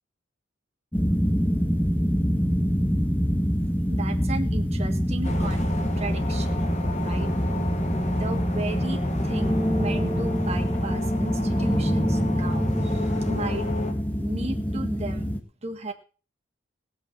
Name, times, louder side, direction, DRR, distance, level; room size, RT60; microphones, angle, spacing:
sound 1, 0.9-15.4, equal, 10° left, 1.5 m, -25 dB
voice 1, 3.9-5.7 6.0-6.6 7.0-7.3 8.1-13.7 14.2-15.3 15.6-15.9, right 2 dB, 30° right, 5 dB, 1.7 m, -35 dB
sound 2, 5.2-13.9, left 2 dB, 35° left, 1.8 m, -33 dB
17.5 x 8.1 x 6.0 m, 0.37 s
head